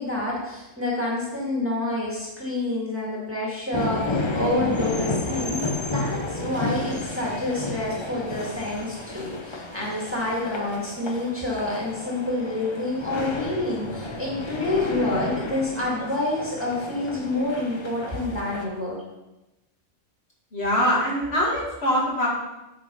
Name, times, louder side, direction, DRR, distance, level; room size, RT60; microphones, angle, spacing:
voice 1, 0.0-5.6 5.9-19.0, left 2 dB, 10° right, -5 dB, 1.9 m, -28 dB
sound 1, 3.7-18.6, left 2 dB, 25° left, 0.6 m, -32 dB
voice 2, 20.5-22.3, equal, 50° left, -5 dB, 2.5 m, -23 dB
8.5 x 5.3 x 5.4 m, 0.99 s
omnidirectional pair, 1.4 m